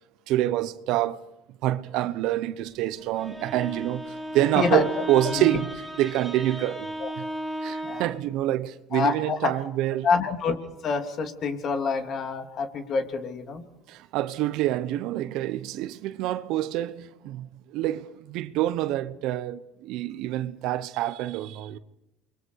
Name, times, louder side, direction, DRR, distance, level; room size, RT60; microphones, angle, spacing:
voice 1, 0.3-1.2 1.6-7.3 7.6-10.1 13.9-21.8, right 14 dB, 75° right, 1.0 m, -27 dB
Bowed string instrument, 3.0-8.3, equal, 5° left, 7.6 m, -35 dB
voice 2, 8.9-9.5 10.0-10.5 10.8-13.6, left 5 dB, 50° left, 3.0 m, -27 dB
29.0 x 23.5 x 4.8 m
supercardioid pair, 85°, 0 cm